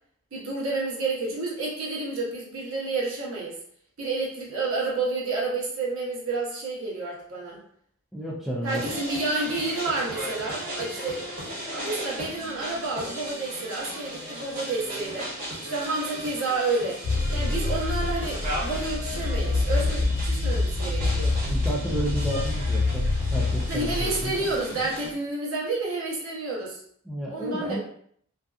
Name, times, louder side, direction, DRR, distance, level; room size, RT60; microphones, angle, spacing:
voice 1, 0.3-3.6 4.0-7.6 8.6-11.2 11.6-15.3 15.6-17.0 17.3-21.4 23.7-26.8 27.3-27.8, right 3 dB, 70° right, -4 dB, 0.8 m, -30 dB
voice 2, 8.1-8.8 21.5-24.5 27.1-27.8, right 1 dB, ahead, -4 dB, 0.3 m, -31 dB
sound 1, 8.7-25.1, equal, 40° right, 1.2 m, -36 dB
sound 2, 17.0-24.6, left 3 dB, 85° left, 0.4 m, -26 dB
2.5 x 2.3 x 2.3 m, 0.63 s
head